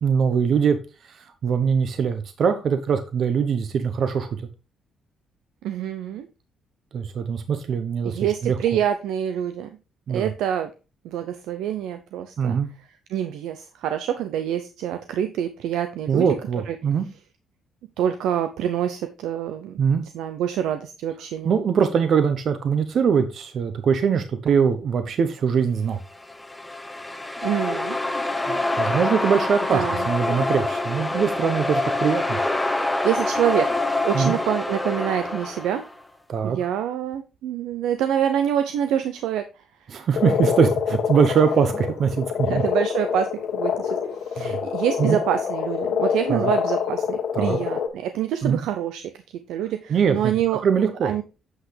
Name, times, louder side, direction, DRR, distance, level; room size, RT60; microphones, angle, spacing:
voice 1, 0.0-0.8 1.0-4.5 6.9-8.6 10.1-10.3 12.4-12.7 16.1-17.1 19.8-20.0 21.4-26.0 28.5-32.4 34.1-34.4 36.3-36.6 39.9-42.6 44.3-44.6 45.0-45.2 46.3-46.5 47.3-47.6 48.4-48.6 49.9-50.3 50.6-51.2, right 6 dB, 60° right, 9 dB, 0.8 m, -22 dB
voice 2, 5.6-6.3 8.0-9.7 10.1-10.7 11.0-12.6 13.1-16.2 16.7-16.8 18.0-21.6 27.4-28.0 28.4-28.7 29.7-30.1 33.0-35.8 36.4-39.6 42.5-49.1 49.5-50.6 51.0-51.2, right 10 dB, 90° right, 8 dB, 0.5 m, -26 dB
sound 1, 26.1-36.0, left 2 dB, 10° left, 0.8 m, -26 dB
Frog, 40.1-47.9, left 7 dB, 70° left, 1.5 m, -26 dB
7.9 x 6.0 x 3.3 m, 0.31 s
cardioid pair, 90°, 0 cm